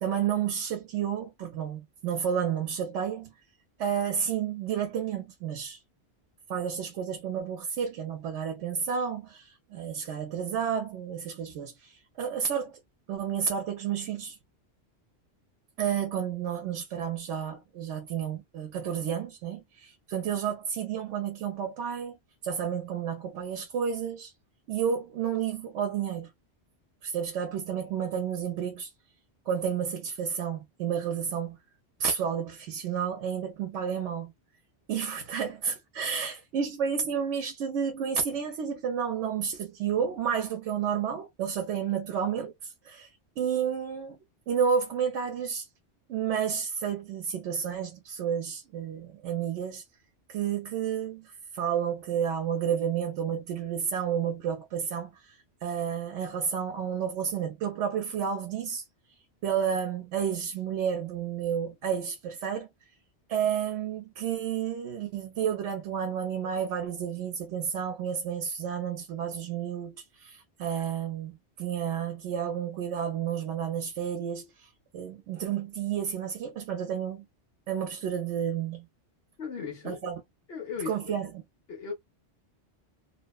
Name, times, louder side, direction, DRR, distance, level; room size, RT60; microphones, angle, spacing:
voice 1, 0.0-3.3 3.8-5.8 6.5-12.8 13.1-14.4 15.8-22.2 22.4-24.3 24.7-26.3 27.0-28.9 29.5-31.6 32.0-34.3 34.9-43.1 43.4-44.2 44.5-45.7 46.1-49.8 50.3-58.8 59.4-62.7 63.3-77.3 77.7-78.9 79.8-80.2 80.9-81.4, right 8 dB, 85° right, 0.9 m, -31 dB
voice 2, 79.4-80.1 80.5-81.1 81.7-81.9, left 6 dB, 60° left, 1.0 m, -37 dB
2.8 x 2.0 x 2.2 m
omnidirectional pair, 1.2 m